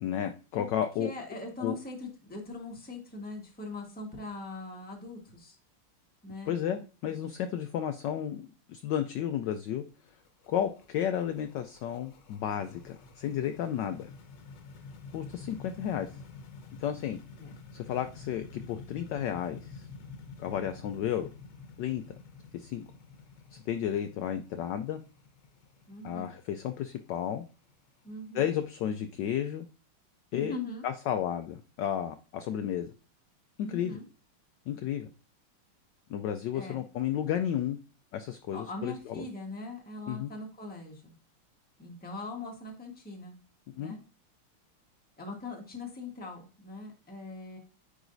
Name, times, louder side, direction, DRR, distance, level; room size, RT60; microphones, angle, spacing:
voice 1, 0.0-1.1 1.6-1.8 6.5-9.8 10.5-14.1 15.1-16.1 16.8-17.2 17.7-19.9 20.4-21.3 21.8-22.2 22.5-22.8 23.5-25.0 26.0-27.4 28.3-29.7 30.3-30.5 30.8-32.9 33.6-34.0 34.7-35.1 36.1-37.8 38.1-39.2 40.1-40.3 43.8-43.9, left 10 dB, 80° left, 8 dB, 1.0 m, -32 dB
voice 2, 1.0-5.6 6.2-6.5 7.1-7.2 17.4-17.5 25.9-26.3 28.0-28.5 30.3-30.9 33.7-34.1 36.5-36.8 38.5-41.1 41.8-43.4 43.8-44.0 45.2-47.6, left 2 dB, 5° left, 0 dB, 1.0 m, -41 dB
sound 1, 9.9-28.6, left 4 dB, 60° left, 1.4 m, -49 dB
9.7 x 3.9 x 2.6 m, 0.35 s
omnidirectional pair, 2.4 m